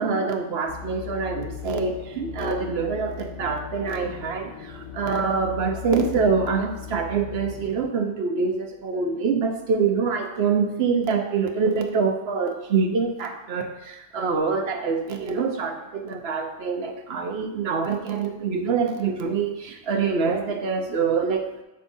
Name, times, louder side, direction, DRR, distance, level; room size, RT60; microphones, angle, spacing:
voice 1, 0.0-21.5, right 5 dB, 60° right, 4 dB, 1.0 m, -25 dB
sound 1, 0.7-7.8, left 9 dB, 85° left, 2.7 m, -38 dB
8.3 x 5.7 x 2.7 m, 0.99 s
omnidirectional pair, 1.2 m